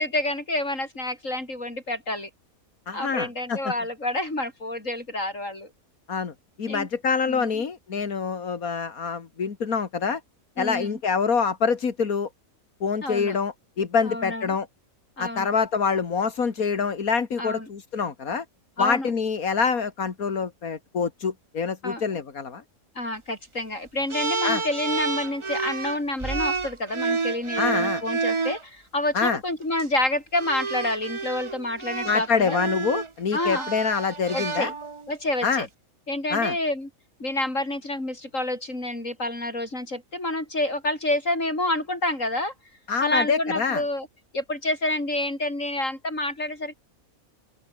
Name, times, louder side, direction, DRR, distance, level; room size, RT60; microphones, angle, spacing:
voice 1, 0.0-2.3 2.9-5.7 6.7-6.9 7.3-7.5 10.6-11.0 13.0-13.4 14.0-14.5 15.2-15.5 17.4-17.7 18.8-19.1 21.8-22.0 23.0-32.6 33.3-33.7 34.3-34.7 35.1-35.7 36.1-36.9 37.2-42.5 43.0-44.1 44.3-46.7, left 1 dB, 60° left, 7.4 m, -28 dB
voice 2, 2.9-3.7 6.1-6.3 6.6-10.2 10.6-12.3 12.8-14.7 15.2-18.4 18.8-22.6 24.4-24.6 27.6-28.0 29.1-29.4 32.1-34.7 35.4-35.7 36.3-36.5 42.9-43.8, left 5 dB, 85° left, 2.4 m, -26 dB
sound 1, 24.1-28.6 29.6-29.8 30.3-35.2, right 4 dB, 25° right, 0.8 m, -29 dB
open air
omnidirectional pair, 1.5 m